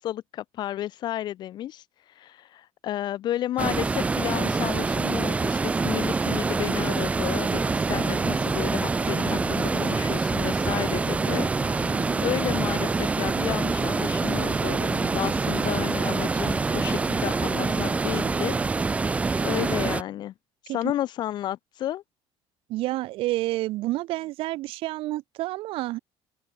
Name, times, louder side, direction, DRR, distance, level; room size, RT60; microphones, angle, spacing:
voice 1, 0.0-1.8 2.2-18.6 19.4-20.3 20.6-22.0, left 12 dB, 50° left, 2.2 m, -32 dB
sound 1, 3.6-20.0, right 4 dB, 15° right, 0.6 m, -25 dB
sound 2, 6.3-18.9, left 20 dB, 80° left, 4.5 m, -46 dB
voice 2, 22.7-26.0, right 18 dB, 65° right, 2.2 m, -29 dB
cardioid pair, 170°, 10 cm